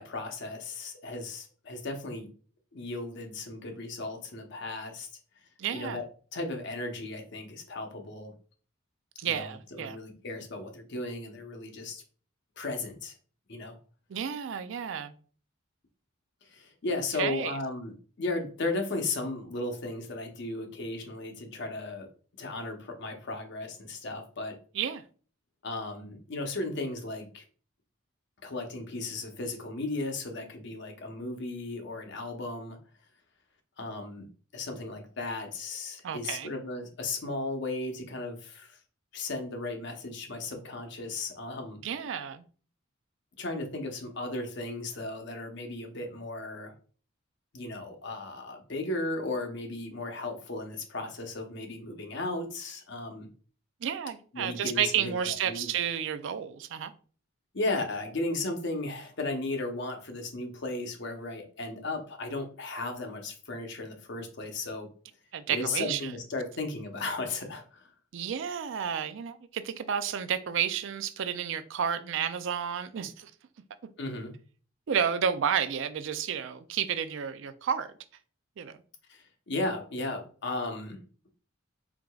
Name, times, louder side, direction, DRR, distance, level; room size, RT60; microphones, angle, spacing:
voice 1, 0.0-2.3 2.7-5.1 5.7-6.0 6.3-8.3 9.2-12.0 12.6-13.1 13.5-13.8 16.4-22.1 22.4-24.6 25.6-27.4 28.4-32.8 33.8-34.3 34.5-38.8 39.1-41.8 43.4-46.7 47.5-53.3 54.3-55.7 57.5-64.9 65.5-67.9 74.0-74.3 79.1-81.0, left 2 dB, 55° left, 0.8 m, -35 dB
voice 2, 5.6-6.0 9.2-10.0 14.1-15.1 17.2-17.5 24.7-25.0 36.0-36.5 41.8-42.4 53.8-56.9 65.3-66.1 68.1-73.3 74.9-77.9 78.6-78.8, right 8 dB, 60° right, 0.4 m, -31 dB
4.7 x 3.7 x 2.3 m
head